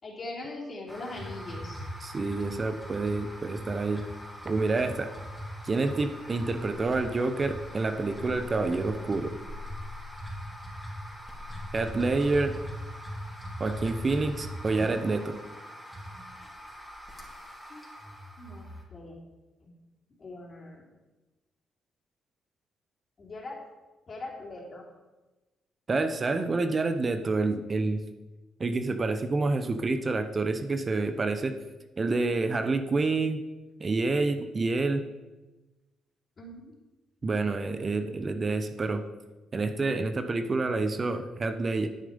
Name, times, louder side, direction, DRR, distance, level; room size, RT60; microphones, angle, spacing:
voice 1, 0.0-1.9 17.7-17.8 18.4-19.2 20.2-20.8 23.2-23.6 24.1-24.8 36.4-36.7, left 2 dB, 40° left, -3 dB, 3.3 m, -41 dB
sound 1, 0.9-18.8, equal, 5° left, 3.7 m, -40 dB
voice 2, 2.0-4.0 4.4-5.1 5.6-9.3 11.7-12.5 13.6-15.3 25.9-28.0 28.6-31.6 32.0-33.4 33.8-35.0 37.2-39.0 39.5-41.9, right 3 dB, 35° right, 8 dB, 1.0 m, -28 dB
10.5 x 9.1 x 5.4 m, 1.1 s
cardioid pair, 90°, 0 cm